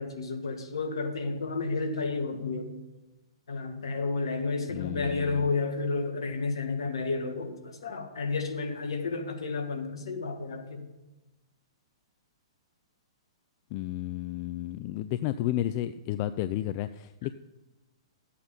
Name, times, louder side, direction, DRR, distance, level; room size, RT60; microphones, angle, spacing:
voice 1, 0.0-2.7 3.5-10.9, left 3 dB, 70° left, 6 dB, 1.7 m, -31 dB
voice 2, 4.7-5.5 13.7-17.3, left 13 dB, 40° left, 12 dB, 0.4 m, -32 dB
13.0 x 8.4 x 5.3 m, 1.0 s
figure-of-eight pair, 115°, 3 cm